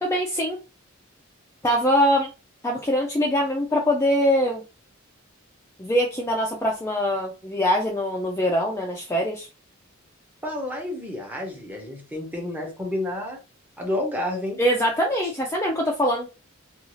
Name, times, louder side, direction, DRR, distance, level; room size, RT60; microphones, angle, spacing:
voice 1, 0.0-0.6 1.6-2.3 2.6-4.6 5.8-9.5 14.6-16.3, equal, 15° left, 0.4 m, -23 dB
voice 2, 10.4-13.4 13.8-14.6, left 1 dB, 10° right, 0.8 m, -30 dB
2.5 x 2.4 x 3.0 m
head